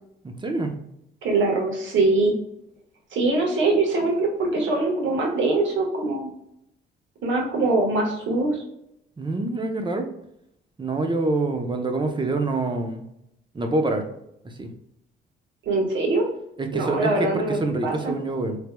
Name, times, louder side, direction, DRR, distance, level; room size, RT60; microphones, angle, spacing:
voice 1, 0.2-0.8 9.2-10.1 10.8-13.0 13.5-14.1 14.4-14.7 16.6-18.6, right 2 dB, 25° right, 5 dB, 0.8 m, -26 dB
voice 2, 1.2-2.4 3.1-6.3 7.2-8.6 15.6-16.2 16.7-18.1, right 2 dB, 70° right, 0 dB, 1.4 m, -23 dB
4.5 x 3.3 x 2.2 m, 0.78 s
cardioid pair, 90°, 20 cm